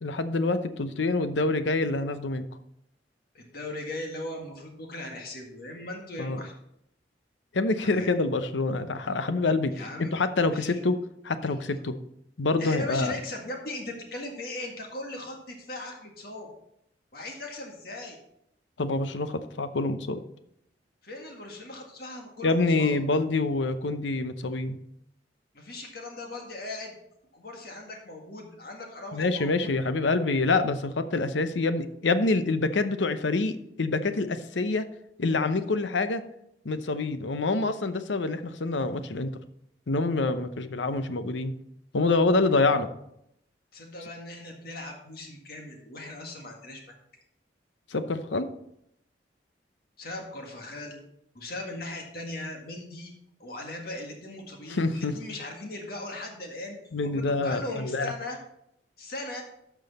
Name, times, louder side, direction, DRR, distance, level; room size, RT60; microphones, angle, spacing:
voice 1, 0.0-2.5 6.2-6.4 7.5-11.0 11.2-11.9 12.4-13.1 18.8-20.2 22.4-24.8 29.1-34.9 35.2-36.2 36.6-39.3 39.9-41.5 41.9-42.9 47.9-48.5 54.7-55.1 56.9-58.1, left 3 dB, 85° left, 10 dB, 0.7 m, -26 dB
voice 2, 3.3-6.5 7.8-8.1 9.7-10.1 10.5-10.8 12.6-16.5 17.1-18.2 21.0-23.0 25.5-26.9 27.3-29.7 43.7-46.8 50.0-51.0 51.3-53.1 53.4-58.4 59.0-59.4, left 2 dB, 55° left, 2 dB, 1.8 m, -38 dB
12.0 x 6.2 x 4.2 m, 0.76 s
head